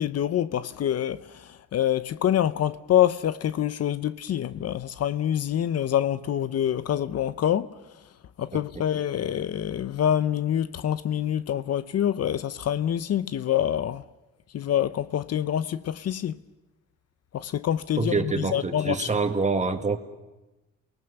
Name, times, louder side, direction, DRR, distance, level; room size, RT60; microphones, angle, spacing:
voice 1, 0.0-7.7 8.4-14.0 14.5-16.3 17.3-19.1, left 10 dB, 55° left, 0.7 m, -26 dB
voice 2, 8.5-8.8 18.0-20.0, right 4 dB, 25° right, 2.0 m, -26 dB
29.0 x 19.5 x 6.7 m
cardioid pair, 90°, 30 cm